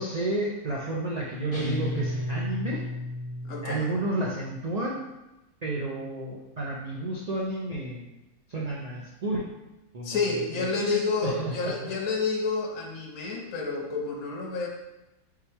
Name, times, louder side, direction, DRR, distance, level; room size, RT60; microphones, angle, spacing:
voice 1, 0.0-2.8 3.6-5.0 5.6-8.1 8.5-9.4 9.9-11.9, right 2 dB, 90° right, -4 dB, 0.3 m, -31 dB
sound 1, 1.5-4.1, left 1 dB, 25° left, 0.6 m, -33 dB
voice 2, 3.4-3.9 10.0-14.7, left 4 dB, 75° left, 1 dB, 1.2 m, -29 dB
3.7 x 2.9 x 4.5 m, 0.98 s
omnidirectional pair, 1.6 m